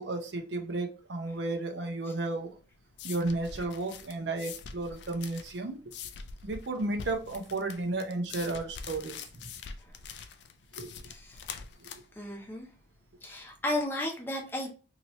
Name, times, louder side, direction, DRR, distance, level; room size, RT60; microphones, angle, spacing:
voice 1, 0.0-2.5 3.0-5.9 6.4-9.5 10.7-10.9 11.9-12.0, right 2 dB, 80° right, 5 dB, 0.7 m, -33 dB
sound 1, 2.4-13.8, left 6 dB, 70° left, 0.4 m, -45 dB
voice 2, 11.1-11.4 12.2-12.7 13.2-14.7, left 1 dB, 10° left, 0 dB, 0.6 m, -34 dB
2.9 x 2.8 x 2.9 m, 0.36 s
head